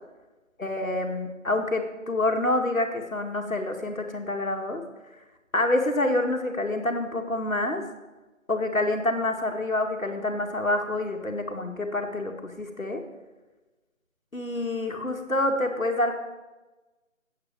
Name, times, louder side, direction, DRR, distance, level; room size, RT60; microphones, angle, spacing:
voice 1, 0.6-4.8 5.5-7.8 8.5-13.0 14.3-16.1, left 2 dB, 85° left, 3 dB, 2.3 m, -27 dB
14.5 x 8.8 x 7.6 m, 1.2 s
figure-of-eight pair, 160°, 40 cm